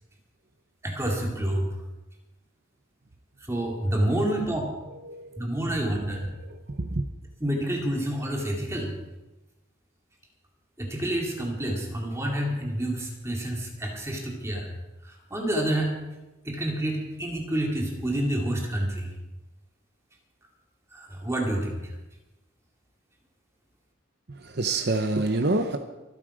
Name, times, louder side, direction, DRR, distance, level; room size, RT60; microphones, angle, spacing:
voice 1, 0.8-1.7 3.5-4.7 5.4-6.3 7.4-8.9 10.8-14.7 15.0-16.0 16.4-19.1 20.9-21.8, right 1 dB, 15° right, -1 dB, 2.3 m, -28 dB
voice 2, 5.0-5.4 5.9-6.1 6.4-7.0 24.3-25.8, right 2 dB, 50° right, 6 dB, 0.8 m, -27 dB
24.5 x 8.9 x 5.0 m, 1.1 s
head